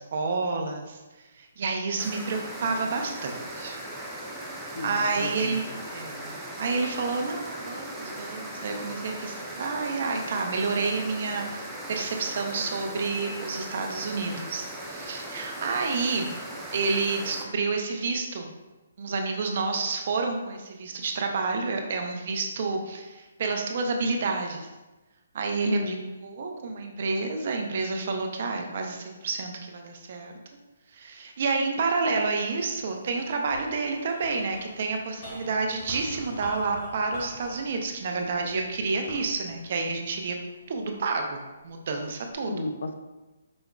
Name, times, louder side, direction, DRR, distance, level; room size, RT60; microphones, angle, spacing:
voice 1, 0.1-1.0 1.4-3.8 4.8-5.6 5.9-16.3 16.7-18.5 19.0-24.7 25.3-25.9 26.2-30.3 30.9-40.4 40.7-42.5, right 4 dB, 50° right, 3 dB, 0.6 m, -29 dB
sound 1, 2.0-17.4, right 1 dB, 5° right, 0.5 m, -38 dB
voice 2, 4.7-5.8 25.6-26.0 38.2-38.9 42.5-42.9, left 3 dB, 65° left, 7 dB, 0.4 m, -34 dB
sound 2, 32.5-41.0 41.6-42.3, equal, 30° left, 1.1 m, -45 dB
5.1 x 3.5 x 2.4 m, 1.1 s
hypercardioid pair, 160°, 0 cm